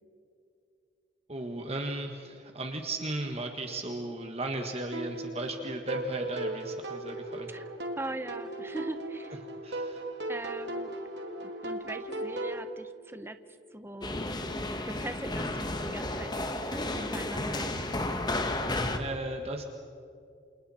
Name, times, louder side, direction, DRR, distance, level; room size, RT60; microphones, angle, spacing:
voice 1, 1.3-7.5 9.6-10.2 17.7-17.9 19.0-19.6, right 2 dB, 35° right, 4 dB, 1.6 m, -36 dB
sound 1, 4.9-12.6, right 2 dB, 70° right, 2.4 m, -37 dB
voice 2, 8.0-9.4 10.3-10.9 11.4-13.4 13.7-14.2 14.8-17.7, right 1 dB, 15° right, 9 dB, 0.9 m, -40 dB
sound 2, 14.0-19.0, left 2 dB, 25° left, 1.4 m, -32 dB
28.5 x 28.0 x 4.4 m, 2.5 s
head